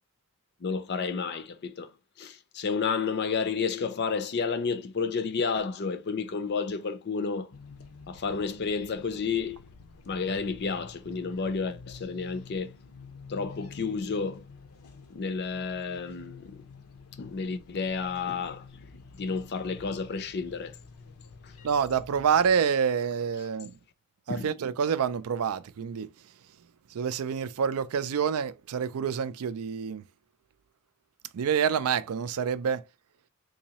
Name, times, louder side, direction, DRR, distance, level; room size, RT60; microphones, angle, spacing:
voice 1, 0.6-1.9 2.2-7.5 8.1-9.6 10.1-12.7 13.3-14.5 15.1-16.6 17.2-18.6 19.2-20.8 21.4-21.5 24.3-24.5, left 5 dB, 50° left, 0.5 m, -31 dB
sound 1, 7.5-22.6, left 4 dB, 85° left, 0.7 m, -49 dB
voice 2, 21.6-23.7 24.3-26.1 26.9-30.0 31.3-32.8, right 7 dB, 90° right, 0.4 m, -27 dB
3.9 x 2.7 x 2.9 m
head